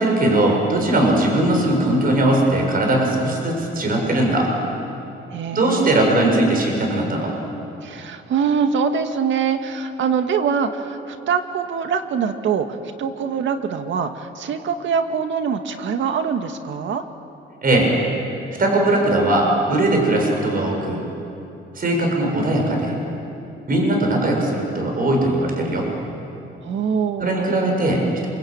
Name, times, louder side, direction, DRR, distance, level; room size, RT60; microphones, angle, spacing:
voice 1, 0.0-4.5 5.5-7.3 17.6-17.9 18.6-21.1 21.7-23.0 23.7-25.9 27.2-28.3, right 1 dB, 45° right, 1 dB, 7.0 m, -19 dB
voice 2, 5.3-6.7 7.8-17.0 26.6-27.7, right 6 dB, 70° right, 7 dB, 2.0 m, -24 dB
27.5 x 24.0 x 8.9 m, 2.9 s
cardioid pair, 90°, 20 cm